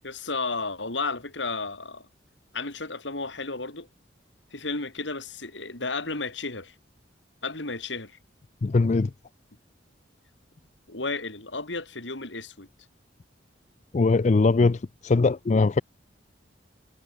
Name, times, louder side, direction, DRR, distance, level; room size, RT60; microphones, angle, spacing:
voice 1, 0.0-2.1 2.5-3.9 4.5-6.7 7.4-8.2 10.9-12.7, left 3 dB, 85° left, 4.5 m, -33 dB
voice 2, 8.6-9.1 13.9-15.8, left 3 dB, 40° left, 0.4 m, -21 dB
head